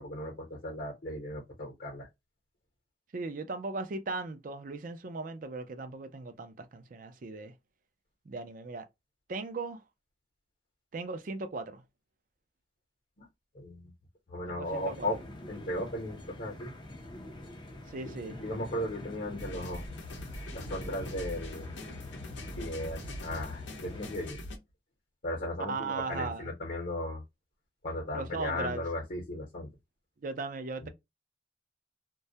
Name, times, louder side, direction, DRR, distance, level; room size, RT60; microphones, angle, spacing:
voice 1, 0.0-2.1 13.2-13.3 13.5-13.9 14.3-15.2 15.5-16.7 18.0-19.8 20.5-21.7 22.6-24.4 25.2-27.2 27.8-29.7 30.8-30.9, left 1 dB, 55° left, 0.8 m, -36 dB
voice 2, 3.1-7.5 8.3-8.9 9.3-9.8 10.9-11.8 14.5-15.2 17.9-18.4 25.7-26.5 28.1-28.8 30.2-30.9, right 3 dB, 50° right, 0.4 m, -37 dB
sound 1, 14.6-24.3, left 1 dB, 25° left, 0.5 m, -46 dB
sound 2, 19.4-24.6, left 1 dB, 85° left, 0.6 m, -42 dB
2.3 x 2.0 x 2.6 m
head